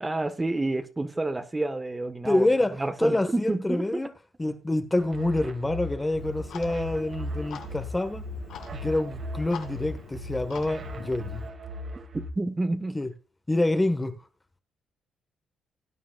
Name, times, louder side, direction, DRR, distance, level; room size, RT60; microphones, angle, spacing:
voice 1, 0.0-2.4 2.8-3.8 12.1-13.0, right 2 dB, 20° right, 1.3 m, -29 dB
voice 2, 2.2-4.1 4.4-8.2 8.7-11.4 12.9-13.1 13.5-14.1, left 2 dB, 15° left, 1.4 m, -27 dB
sound 1, 5.0-12.3, equal, 50° right, 2.3 m, -38 dB
Clock, 6.2-11.5, left 7 dB, 75° left, 2.2 m, -44 dB
19.5 x 9.3 x 2.4 m
cardioid pair, 90°, 0 cm